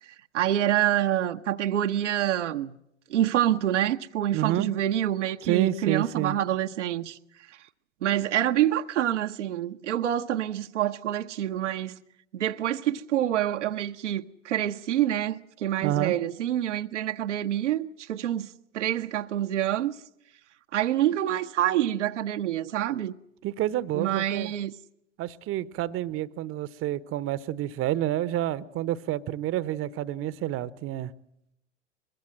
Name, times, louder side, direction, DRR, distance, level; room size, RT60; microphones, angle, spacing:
voice 1, 0.3-2.7 3.1-7.2 8.0-12.0 12.3-20.0 20.7-23.1 23.9-24.7, right 11 dB, 70° right, 0.9 m, -27 dB
voice 2, 4.3-4.7 5.4-6.4 15.8-16.2 23.4-24.5 25.2-31.1, right 13 dB, 35° right, 1.0 m, -29 dB
23.0 x 21.5 x 7.5 m
figure-of-eight pair, 80°, 37 cm